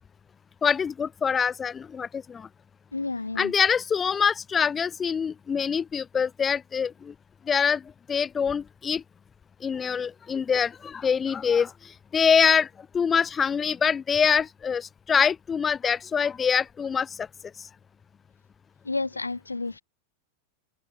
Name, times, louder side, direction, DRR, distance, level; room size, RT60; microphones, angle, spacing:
voice 1, 0.6-2.5 3.4-7.1 7.5-7.8 8.1-9.0 9.6-12.7 12.9-17.3 17.6-17.7, left 6 dB, 20° left, 1.1 m, -25 dB
voice 2, 2.9-3.5 18.8-19.8, left 3 dB, 80° left, 5.9 m, -31 dB
figure-of-eight pair, 90°, 0 cm